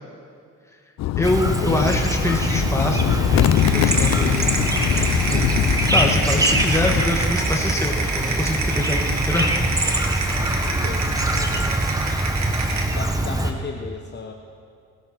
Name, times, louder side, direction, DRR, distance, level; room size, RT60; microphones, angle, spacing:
sound 1, 1.0-7.1, left 12 dB, 60° left, 0.5 m, -23 dB
voice 1, 1.2-5.0 5.3-5.5 5.9-9.6, left 1 dB, 10° left, 1 dB, 2.1 m, -25 dB
Chirp tweet, 1.2-13.5, right 1 dB, 10° right, 1.3 m, -23 dB
sound 2, 3.6-12.9, right 3 dB, 65° right, 2.4 m, -28 dB
voice 2, 10.2-11.8 12.9-14.3, left 5 dB, 35° left, 3 dB, 1.1 m, -36 dB
20.0 x 12.0 x 4.7 m, 2.3 s
cardioid pair, 90°, 30 cm